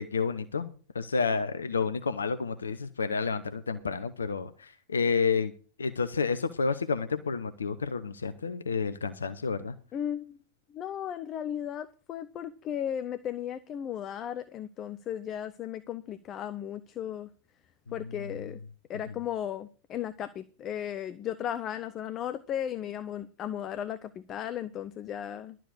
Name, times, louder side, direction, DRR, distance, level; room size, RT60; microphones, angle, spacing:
voice 1, 0.0-5.5 5.8-9.7 18.0-18.3, left 5 dB, 70° left, 0.7 m, -30 dB
voice 2, 9.9-10.4 10.7-17.3 17.9-18.6 18.9-25.6, left 10 dB, 30° left, 0.7 m, -35 dB
12.0 x 7.5 x 6.5 m
figure-of-eight pair, 90°, 0 cm